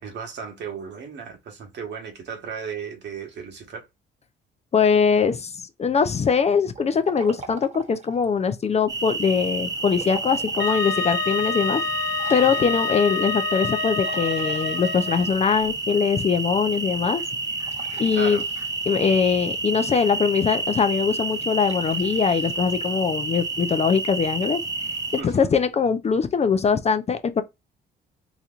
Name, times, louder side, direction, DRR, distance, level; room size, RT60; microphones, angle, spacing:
voice 1, 0.0-3.9 12.4-12.8 18.2-18.4 25.2-25.5, right 6 dB, 65° right, 1.2 m, -35 dB
voice 2, 4.7-5.5 5.8-11.8 12.3-17.2 18.0-18.4 18.9-24.6 25.1-27.4, left 6 dB, 35° left, 0.5 m, -22 dB
Liquid, 6.7-8.3 9.8-10.9 11.3-11.4 12.2-13.2 14.0-15.6 17.6-19.0 21.5-23.2, right 4 dB, 35° right, 1.2 m, -43 dB
sound 1, 8.9-25.2, right 3 dB, 20° right, 0.7 m, -30 dB
Wind instrument woodwind instrument, 10.6-15.3, left 5 dB, 65° left, 0.8 m, -28 dB
3.9 x 2.9 x 2.4 m
cardioid pair, 90°, 20 cm